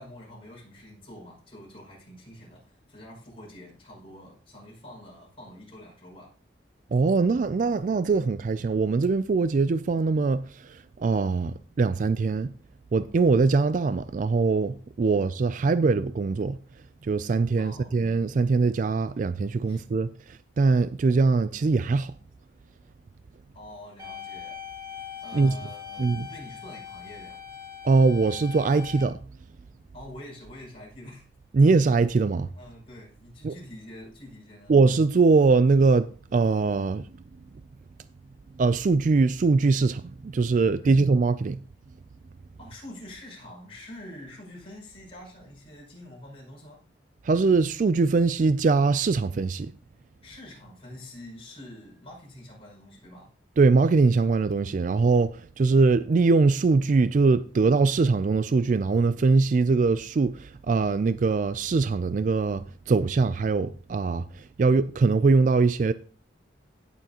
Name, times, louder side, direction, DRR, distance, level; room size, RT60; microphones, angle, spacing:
voice 1, 0.0-6.3 15.1-15.2 17.6-18.0 19.7-19.8 23.5-24.6 25.2-27.4 29.9-31.3 32.6-34.8 40.6-41.1 42.6-46.8 50.2-53.3, left 1 dB, 35° left, 6.2 m, -46 dB
voice 2, 6.9-12.5 12.9-16.6 17.0-22.1 25.3-25.6 26.0-26.3 27.8-29.2 31.5-32.5 33.4-33.5 34.7-37.1 38.5-41.6 47.2-49.7 53.6-65.9, right 4 dB, 45° right, 0.3 m, -22 dB
sound 1, 24.0-29.0, left 8 dB, 20° right, 4.2 m, -41 dB
16.5 x 7.0 x 2.9 m
head